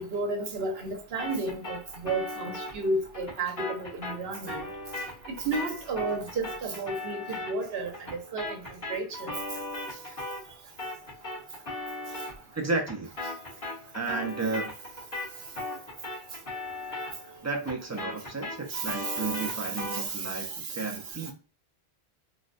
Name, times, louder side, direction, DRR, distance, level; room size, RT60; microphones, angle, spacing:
voice 1, 0.0-4.6 5.3-7.9 8.3-8.6 8.9-9.4 18.7-19.2 19.9-20.2, right 3 dB, 70° right, 1.0 m, -32 dB
sound 1, 1.2-10.5 10.8-20.1, left 2 dB, 55° left, 1.5 m, -38 dB
voice 2, 12.5-13.1 13.9-14.7 17.4-21.3, right 3 dB, 20° right, 0.5 m, -32 dB
3.2 x 2.2 x 2.5 m
omnidirectional pair, 1.1 m